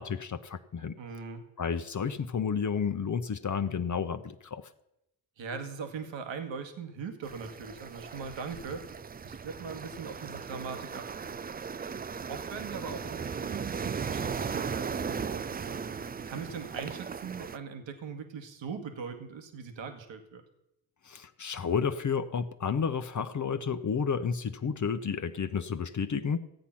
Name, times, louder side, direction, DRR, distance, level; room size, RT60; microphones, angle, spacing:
voice 1, 0.0-1.0 1.6-4.6 21.1-26.4, left 6 dB, 35° left, 9 dB, 0.9 m, -31 dB
voice 2, 1.0-1.4 5.4-11.4 11.8-12.0 12.3-15.9 16.3-20.4, right 5 dB, 65° right, 6 dB, 1.8 m, -41 dB
sound 1, 7.2-17.6, right 6 dB, 20° right, 0.4 m, -37 dB
14.5 x 8.4 x 5.9 m, 0.84 s
hypercardioid pair, 45°, 49 cm